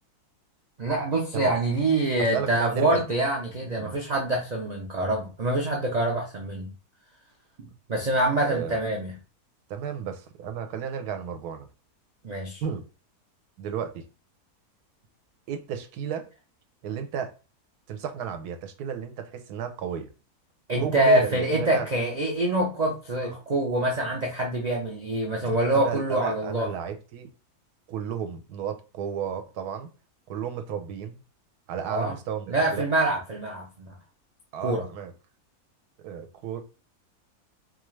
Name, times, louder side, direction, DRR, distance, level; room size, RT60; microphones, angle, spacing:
voice 1, 0.8-6.7 7.9-9.1 12.2-12.6 20.7-26.7 31.9-32.1 32.5-33.9 34.6-34.8, right 1 dB, 70° right, 0.4 m, -25 dB
voice 2, 2.2-3.0 3.8-4.0 8.4-8.8 9.7-11.7 12.6-12.8 13.6-14.0 15.5-16.3 16.8-17.3 17.9-20.1 20.8-21.9 25.5-27.3 27.9-29.9 30.3-31.2 31.7-32.9 34.5-35.1 36.0-36.6, right 8 dB, 85° right, 1.1 m, -33 dB
4.2 x 2.4 x 3.1 m
omnidirectional pair, 1.6 m